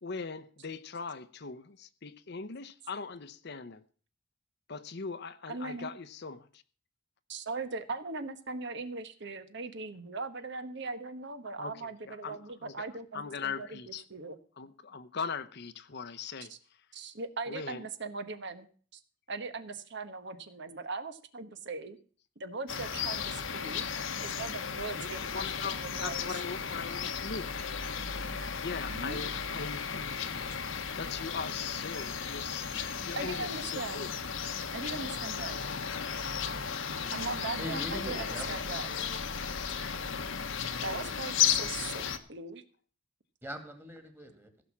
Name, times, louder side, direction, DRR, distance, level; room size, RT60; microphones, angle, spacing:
voice 1, 0.0-3.8 4.7-6.6 11.6-12.7 13.1-14.0 14.6-16.5 17.5-17.9 25.0-27.5 28.6-30.3 31.0-34.1 40.8-41.1, left 5 dB, 55° left, 0.8 m, -40 dB
voice 2, 5.5-5.9 7.3-13.8 14.1-14.4 16.9-18.7 18.9-19.0 19.3-22.0 22.4-23.8 24.2-25.4 25.8-26.4 28.9-29.2 33.2-34.1 34.7-35.6 37.1-38.9 40.8-42.6, right 3 dB, 60° right, 1.2 m, -39 dB
sound 1, 22.7-42.2, left 7 dB, 70° left, 1.1 m, -35 dB
voice 3, 37.6-38.5 43.4-44.5, left 1 dB, 10° right, 2.1 m, -41 dB
16.0 x 6.3 x 7.2 m
head